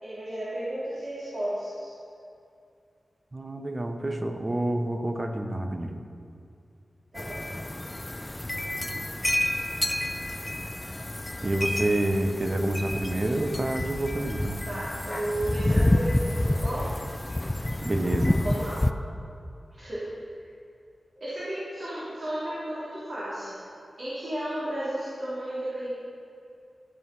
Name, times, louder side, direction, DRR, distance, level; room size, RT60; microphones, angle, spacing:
voice 1, 0.0-1.9 7.1-7.4 14.7-16.9 18.4-18.8 19.7-20.1 21.2-23.5 24.0-25.9, right 1 dB, 65° right, -11 dB, 3.8 m, -33 dB
voice 2, 3.3-5.9 11.4-14.6 17.8-18.4, right 1 dB, 30° right, 5 dB, 1.1 m, -28 dB
sound 1, 7.2-18.9, left 1 dB, 15° left, 0.5 m, -29 dB
15.0 x 9.4 x 5.5 m, 2.4 s
wide cardioid pair, 100°, 0 cm